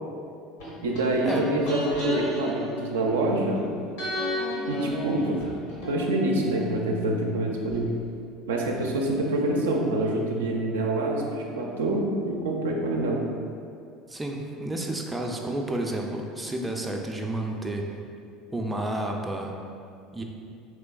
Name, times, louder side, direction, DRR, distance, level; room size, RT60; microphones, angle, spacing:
sound 1, 0.6-3.6 4.0-7.8 8.0-8.1, left 1 dB, 75° left, 1.0 m, -34 dB
voice 1, 0.8-3.6 4.7-5.4 5.9-7.9 8.5-13.2, right 1 dB, 85° right, -1 dB, 0.4 m, -26 dB
voice 2, 14.1-17.9 18.5-19.5 20.1-20.2, right 1 dB, 15° right, 1 dB, 0.4 m, -30 dB
3.2 x 3.1 x 2.3 m, 2.4 s
hypercardioid pair, 75°, 0 cm